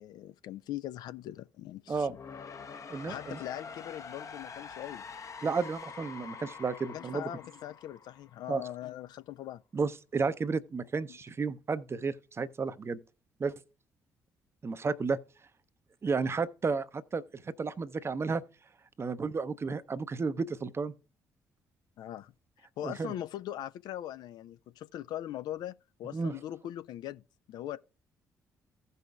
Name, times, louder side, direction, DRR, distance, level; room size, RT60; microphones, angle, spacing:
voice 1, 0.0-2.1 3.0-5.0 6.9-9.6 11.1-11.2 22.0-22.3 22.6-25.7 26.0-27.2 27.5-27.8, left 12 dB, 55° left, 0.3 m, -41 dB
sound 1, 1.9-8.8, left 5 dB, 35° left, 0.7 m, -46 dB
voice 2, 2.9-3.4 5.4-7.2 8.5-8.6 9.7-13.0 13.4-13.5 14.6-15.2 16.0-17.2 17.6-18.4 19.0-20.9 22.8-23.1 26.1-26.3, right 4 dB, 30° right, 0.6 m, -32 dB
16.0 x 5.5 x 2.3 m
figure-of-eight pair, 45°, 9 cm